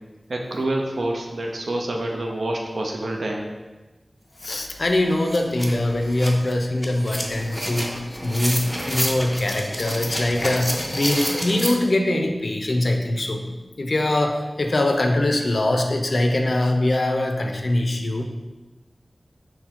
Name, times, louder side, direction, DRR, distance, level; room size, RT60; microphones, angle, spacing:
voice 1, 0.3-3.5, right 1 dB, 85° right, 1 dB, 0.4 m, -27 dB
voice 2, 4.4-13.4 13.8-18.2, left 1 dB, 65° left, 4 dB, 0.4 m, -22 dB
sound 1, 4.4-4.5 4.8-11.7, equal, 5° left, 0.5 m, -29 dB
6.0 x 2.1 x 2.8 m, 1.2 s
wide cardioid pair, 70°, 0 cm